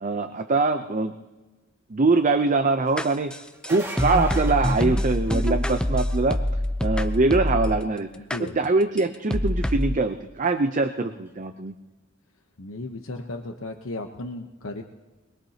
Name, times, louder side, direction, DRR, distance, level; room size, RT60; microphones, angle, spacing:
voice 1, 0.0-1.1 1.9-3.3 3.7-6.4 6.8-8.1 8.4-11.7, right 3 dB, 40° right, 7 dB, 0.6 m, -23 dB
sound 1, 3.0-7.8 8.3-8.4 9.0-9.1 9.3-10.0, left 1 dB, 5° left, 0.5 m, -25 dB
sound 2, 3.5-5.8 11.3-11.4 13.2-13.3, right 1 dB, 10° right, 1.9 m, -38 dB
voice 2, 12.6-14.8, left 2 dB, 70° left, 3 dB, 0.9 m, -35 dB
23.0 x 21.5 x 2.9 m, 1.2 s
head